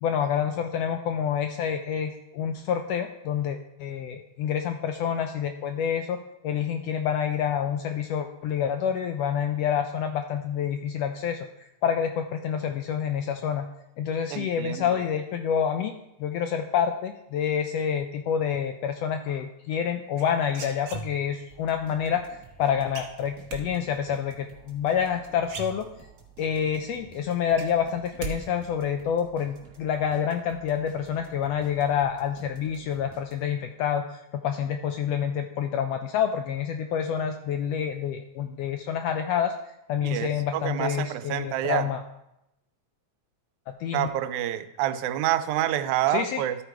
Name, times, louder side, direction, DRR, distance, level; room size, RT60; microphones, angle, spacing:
voice 1, 0.0-6.2 6.4-11.4 11.8-13.7 14.0-15.9 16.2-22.2 22.6-25.9 26.4-39.5 39.9-42.0 43.7-44.1 46.1-46.4, left 8 dB, 80° left, 6 dB, 1.4 m, -28 dB
voice 2, 14.3-15.0 40.0-41.9 43.9-46.6, right 13 dB, 90° right, 11 dB, 2.0 m, -28 dB
sound 1, 20.2-21.5 22.9-23.6 25.0-25.1 25.4-26.3 26.7-26.8 27.1-28.4 28.6-29.1, right 5 dB, 65° right, 1.2 m, -38 dB
sound 2, 21.5-33.7, right 5 dB, 40° right, 1.1 m, -52 dB
13.0 x 4.7 x 4.5 m, 0.86 s
omnidirectional pair, 3.3 m